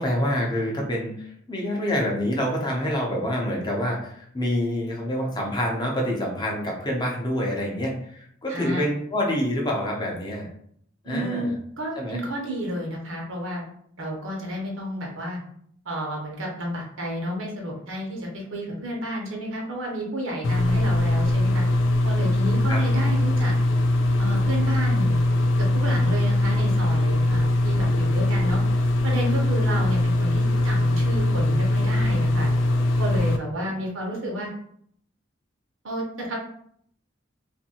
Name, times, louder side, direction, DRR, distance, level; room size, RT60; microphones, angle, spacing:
voice 1, 0.0-10.5 11.0-11.5 12.0-12.2 22.7-22.8, equal, 20° left, -1 dB, 0.6 m, -27 dB
voice 2, 8.5-8.8 11.0-13.6 14.0-15.4 15.8-21.6 22.0-23.5 24.2-25.2 25.6-28.6 29.0-32.5 33.0-34.5 35.8-36.4, equal, 80° right, -1 dB, 0.9 m, -31 dB
sound 1, 20.4-33.4, left 1 dB, 70° left, 0.4 m, -21 dB
2.7 x 2.5 x 2.8 m, 0.66 s
head